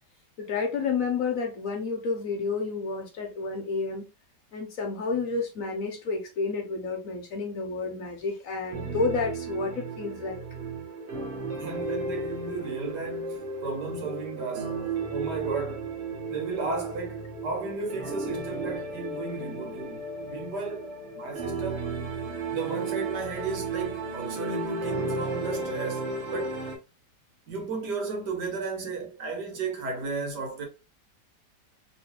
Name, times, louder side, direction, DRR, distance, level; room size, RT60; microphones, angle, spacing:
voice 1, 0.4-4.0 4.5-10.4, left 4 dB, 60° left, 1.0 m, -30 dB
sound 1, 8.7-26.8, right 3 dB, 50° right, 1.1 m, -34 dB
voice 2, 11.5-14.8 15.1-15.9 16.3-21.9 22.5-26.6 27.5-30.6, right 4 dB, 75° right, 1.7 m, -34 dB
3.1 x 3.0 x 2.9 m
omnidirectional pair, 1.8 m